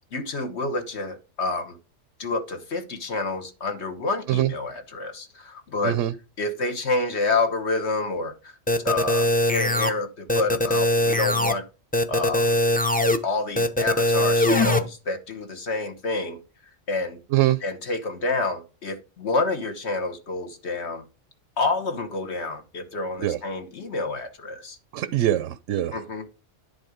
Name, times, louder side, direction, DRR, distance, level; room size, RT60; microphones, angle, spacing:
voice 1, 0.1-1.8 2.2-6.0 6.4-8.5 8.8-11.6 12.1-12.6 13.2-16.4 16.9-17.2 17.6-21.1 21.6-24.8 25.9-26.3, left 3 dB, 60° left, 1.5 m, -28 dB
sound 1, 8.7-9.9 10.3-11.5 11.9-13.2 13.6-14.8, left 1 dB, 10° left, 0.4 m, -21 dB
voice 2, 17.3-17.6 23.2-23.4 24.9-26.0, right 13 dB, 80° right, 0.9 m, -23 dB
10.5 x 4.1 x 5.0 m
omnidirectional pair, 1.3 m